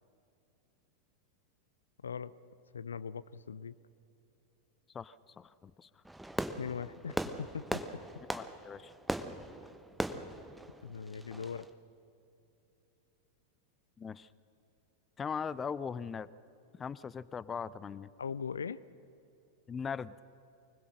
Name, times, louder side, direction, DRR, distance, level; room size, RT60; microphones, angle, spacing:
voice 1, 2.7-3.7 6.6-7.8 10.1-10.2 10.8-11.7 18.2-18.8, left 6 dB, 70° left, 19 dB, 0.5 m, -40 dB
voice 2, 4.9-5.9 8.3-8.9 14.0-14.3 15.2-16.3 16.8-18.1 19.7-20.1, left 6 dB, 20° left, 19 dB, 0.5 m, -39 dB
Fireworks, 6.1-11.7, right 1 dB, 5° right, 0.9 m, -39 dB
25.0 x 20.0 x 6.5 m, 2.8 s
figure-of-eight pair, 90°, 0 cm